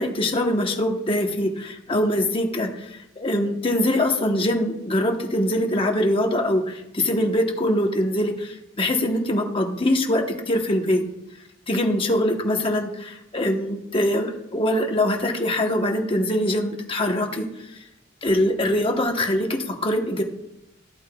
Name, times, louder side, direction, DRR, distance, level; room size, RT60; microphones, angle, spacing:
voice 1, 0.0-11.0 11.7-17.8 18.2-20.2, left 1 dB, 25° left, 3 dB, 1.0 m, -23 dB
14.0 x 8.4 x 2.3 m, 0.85 s
head